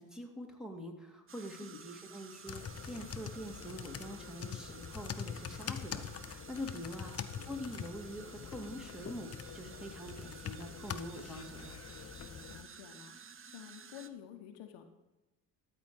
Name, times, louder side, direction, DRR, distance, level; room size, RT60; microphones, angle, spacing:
voice 1, 0.0-7.1 7.5-11.8, equal, ahead, 0 dB, 2.3 m, -45 dB
sound 1, 1.3-14.1, right 6 dB, 30° right, 0.8 m, -53 dB
sound 2, 2.5-12.6, left 7 dB, 35° left, 0.8 m, -44 dB
voice 2, 12.5-13.2 13.5-14.8, left 10 dB, 70° left, 5 dB, 1.2 m, -50 dB
13.0 x 4.5 x 7.9 m, 1.1 s
hypercardioid pair, 50°, 45 cm